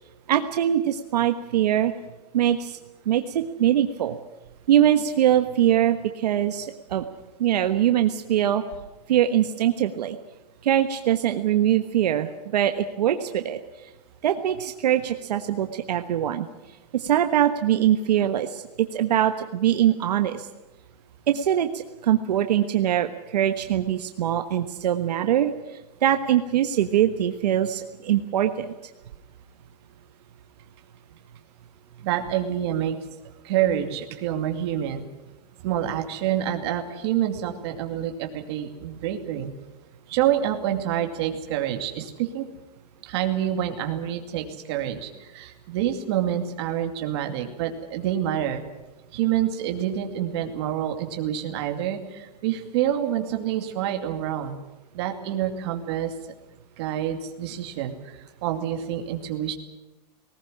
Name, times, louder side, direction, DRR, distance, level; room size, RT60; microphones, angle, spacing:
voice 1, 0.3-1.9 2.3-2.8 3.0-4.1 4.7-7.0 7.4-8.6 9.1-10.2 10.6-13.6 14.2-16.5 16.9-20.5 21.3-28.7, right 11 dB, 70° right, 7 dB, 1.3 m, -22 dB
voice 2, 32.0-33.0 33.4-35.1 35.6-39.5 40.1-42.4 43.0-48.6 49.1-54.5 54.9-56.1 56.8-58.1 58.4-59.6, right 11 dB, 40° right, 5 dB, 2.5 m, -27 dB
19.0 x 19.0 x 9.9 m, 1.1 s
supercardioid pair, 175°, 21 cm